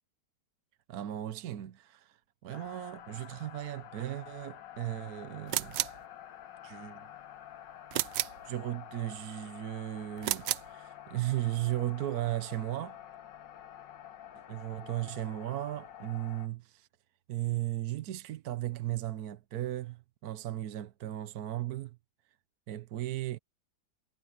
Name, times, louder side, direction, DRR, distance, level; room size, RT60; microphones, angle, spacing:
voice 1, 0.9-2.2 2.4-5.8 6.6-7.1 8.4-13.0 14.5-16.9 17.3-22.0 22.7-23.4, right 14 dB, 65° right, 1.2 m, -36 dB
sound 1, 2.5-16.5, left 11 dB, 80° left, 1.8 m, -49 dB
sound 2, 5.5-6.0 7.9-8.4 10.2-10.7, right 15 dB, 85° right, 1.3 m, -32 dB
omnidirectional pair, 1.9 m